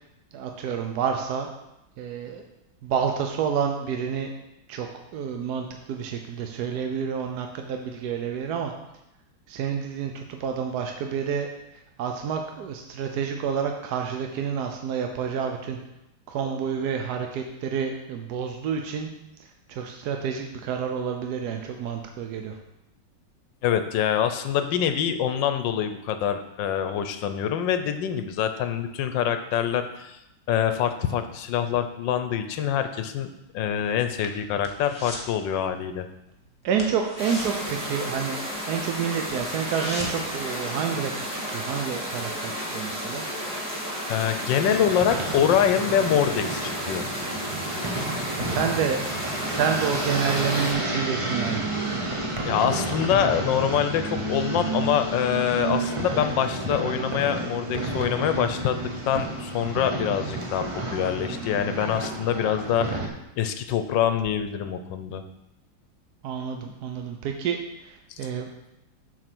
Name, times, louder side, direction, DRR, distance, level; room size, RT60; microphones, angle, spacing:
voice 1, 0.3-1.5 2.0-2.4 2.8-4.3 4.7-8.7 9.5-15.8 16.3-19.1 19.4-22.6 36.6-38.4 38.7-43.3 48.3-49.0 49.4-51.7 52.0-52.1 66.2-68.5, right 7 dB, 65° right, 4 dB, 1.0 m, -29 dB
voice 2, 23.6-30.2 30.5-36.1 44.1-47.1 52.5-63.0 63.4-65.2, left 9 dB, 75° left, 9 dB, 1.3 m, -25 dB
sound 1, 33.8-35.4 35.6-35.9 36.2-36.3 36.7-38.6 38.9-39.0 39.3-40.4 40.7-40.8, left 1 dB, 15° left, 1.2 m, -38 dB
sound 2, 37.2-50.7, equal, 5° right, 2.3 m, -32 dB
sound 3, 44.5-63.1, right 2 dB, 35° right, 0.5 m, -31 dB
7.4 x 5.2 x 6.0 m, 0.89 s
omnidirectional pair, 2.2 m